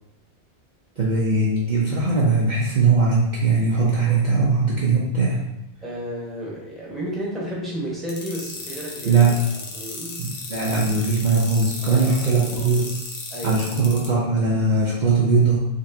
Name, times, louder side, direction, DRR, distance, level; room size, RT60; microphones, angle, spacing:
voice 1, 1.0-5.4 9.0-9.3 10.2-12.9 13.4-15.7, right 3 dB, 50° right, -6 dB, 0.7 m, -20 dB
voice 2, 5.8-9.2 9.5-10.3 11.8-12.1 12.5-12.8 13.3-13.6, equal, ahead, -6 dB, 1.0 m, -32 dB
sound 1, 8.1-14.1, left 3 dB, 75° left, 1.1 m, -35 dB
4.0 x 3.3 x 2.7 m, 0.89 s
omnidirectional pair, 1.1 m